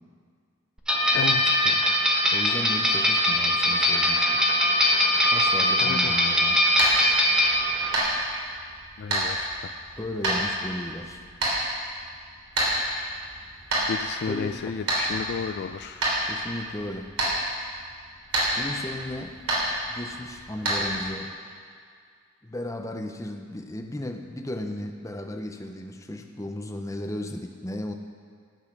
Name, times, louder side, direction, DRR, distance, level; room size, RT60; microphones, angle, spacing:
sound 1, 0.9-8.0, left 1 dB, 5° right, 1.1 m, -22 dB
voice 1, 1.1-1.9 5.8-6.2 9.0-9.7 13.9-16.0, left 6 dB, 50° left, 9 dB, 0.3 m, -33 dB
voice 2, 2.3-4.4 5.3-6.6 10.0-11.2 14.3-14.8 16.3-17.1 18.6-19.4 19.9-21.3 22.4-27.9, left 1 dB, 15° left, 4 dB, 0.7 m, -35 dB
sound 2, 6.5-21.0, right 1 dB, 75° right, 3.3 m, -29 dB
12.0 x 8.2 x 6.1 m, 2.1 s
head